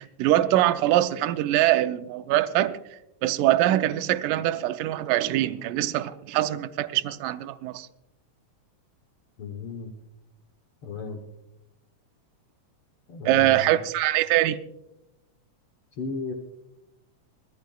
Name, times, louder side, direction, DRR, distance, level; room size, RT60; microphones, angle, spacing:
voice 1, 0.0-2.8 3.2-7.9 13.3-14.6, right 14 dB, 90° right, 2.3 m, -23 dB
voice 2, 9.4-9.9 10.8-11.2 13.1-13.8 15.9-16.3, left 4 dB, 65° left, 1.5 m, -35 dB
25.5 x 13.0 x 2.3 m
omnidirectional pair, 3.7 m